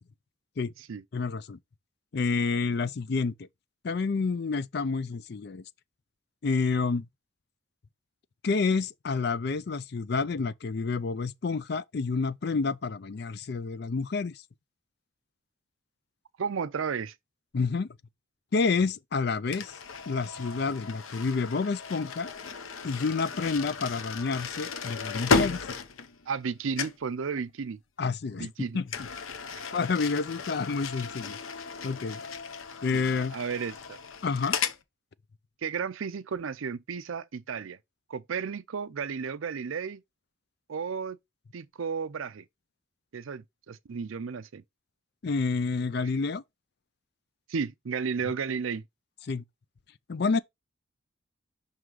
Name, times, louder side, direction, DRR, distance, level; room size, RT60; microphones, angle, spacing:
voice 1, 1.1-1.6 2.1-3.5 3.8-5.6 6.4-7.1 8.4-14.4 17.5-17.9 18.5-19.7 20.1-22.3 22.8-25.6 28.0-28.9 29.7-31.4 31.8-32.2 32.8-33.4 34.2-34.6 45.2-46.4 49.3-49.4 50.1-50.4, left 4 dB, 55° left, 0.4 m, -29 dB
voice 2, 16.4-17.1 26.3-27.8 28.4-28.8 29.5-29.6 32.9-33.0 33.3-34.0 35.6-37.8 38.1-40.0 40.7-41.2 41.5-42.4 43.1-44.6 47.5-48.8, right 6 dB, 80° right, 0.5 m, -33 dB
sound 1, 19.5-26.5 26.8-27.1 28.9-34.8, left 5 dB, 85° left, 0.9 m, -34 dB
5.7 x 3.7 x 4.6 m
head